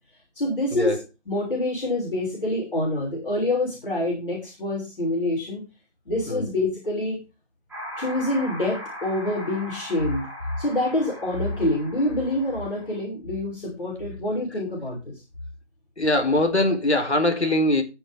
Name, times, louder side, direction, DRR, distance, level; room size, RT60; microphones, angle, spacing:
voice 1, 0.3-1.0 1.3-5.6 6.1-7.2 8.0-10.3 10.6-15.1, left 1 dB, 50° left, 6.4 m, -26 dB
sound 1, 7.7-13.0, equal, ahead, 3.8 m, -39 dB
voice 2, 16.0-17.8, left 1 dB, 70° left, 4.0 m, -22 dB
15.0 x 7.2 x 3.6 m
figure-of-eight pair, 165°, 35 cm